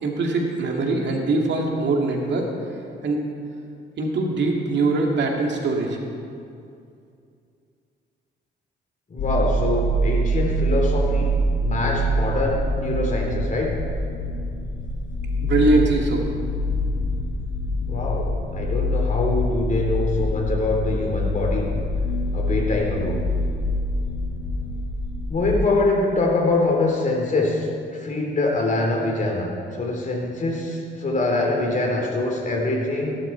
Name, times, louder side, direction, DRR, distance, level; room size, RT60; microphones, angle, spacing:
voice 1, 0.0-2.5 3.0-3.2 4.0-6.0 15.4-16.2, right 3 dB, 65° right, 1 dB, 2.3 m, -22 dB
voice 2, 9.1-11.3 11.6-13.7 17.9-21.6 22.3-23.2 25.3-33.2, left 2 dB, 40° left, 0 dB, 3.4 m, -24 dB
sound 1, 9.2-25.6, equal, 70° left, 1.8 m, -25 dB
17.5 x 12.0 x 4.5 m, 2.4 s
cardioid pair, 90°, 20 cm